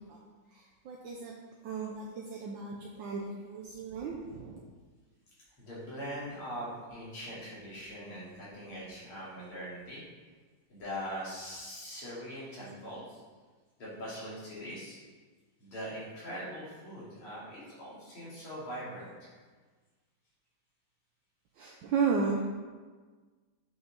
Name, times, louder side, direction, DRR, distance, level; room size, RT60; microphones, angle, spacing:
voice 1, 0.5-1.3 1.6-4.6 21.5-22.4, right 5 dB, 70° right, -1 dB, 1.4 m, -34 dB
voice 2, 5.6-10.0 10.7-13.2 13.8-15.0 15.6-19.3, equal, 90° left, -8 dB, 3.4 m, -42 dB
7.7 x 5.8 x 4.0 m, 1.4 s
omnidirectional pair, 2.3 m